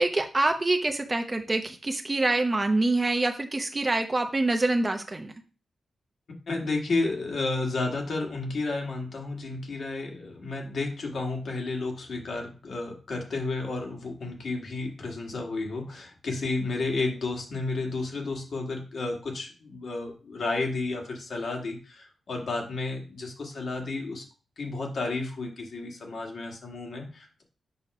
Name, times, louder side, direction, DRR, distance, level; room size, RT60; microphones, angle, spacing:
voice 1, 0.0-5.3, right 2 dB, 20° right, 5 dB, 0.7 m, -25 dB
voice 2, 6.5-24.2 24.6-27.4, left 3 dB, 60° left, 1 dB, 1.6 m, -32 dB
7.0 x 2.9 x 5.8 m, 0.35 s
wide cardioid pair, 150°, 0 cm